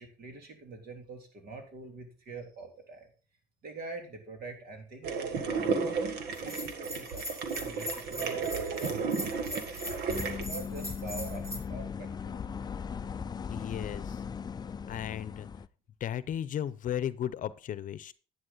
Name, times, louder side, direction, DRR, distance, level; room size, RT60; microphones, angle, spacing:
voice 1, 0.0-3.1 3.6-10.0 10.5-12.4, right 3 dB, 65° right, 3 dB, 3.6 m, -45 dB
sound 1, 5.0-10.4, right 4 dB, 80° right, 1.7 m, -33 dB
Bell, 6.3-11.6, equal, 20° right, 4.2 m, -41 dB
sound 2, 10.1-15.7, left 6 dB, 25° left, 0.4 m, -38 dB
voice 2, 13.5-14.2 14.9-15.5 16.0-18.1, left 10 dB, 50° left, 16 dB, 0.7 m, -35 dB
11.5 x 8.8 x 4.0 m, 0.36 s
cardioid pair, 110°, 17 cm